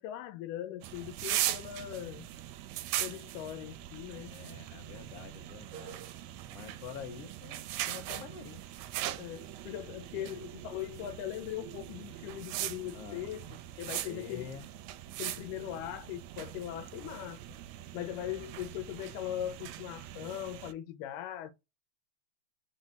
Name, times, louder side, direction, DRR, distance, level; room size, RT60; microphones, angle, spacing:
voice 1, 0.0-2.3 3.0-4.4 9.2-14.5 15.2-17.4 17.9-21.5, left 12 dB, 85° left, 2.1 m, -40 dB
sound 1, 0.8-20.7, right 13 dB, 80° right, 1.6 m, -40 dB
voice 2, 4.3-6.0 6.5-8.6 10.1-10.4 12.9-13.3 14.0-14.6, left 7 dB, 70° left, 1.5 m, -47 dB
5.2 x 2.0 x 4.0 m
omnidirectional pair, 3.6 m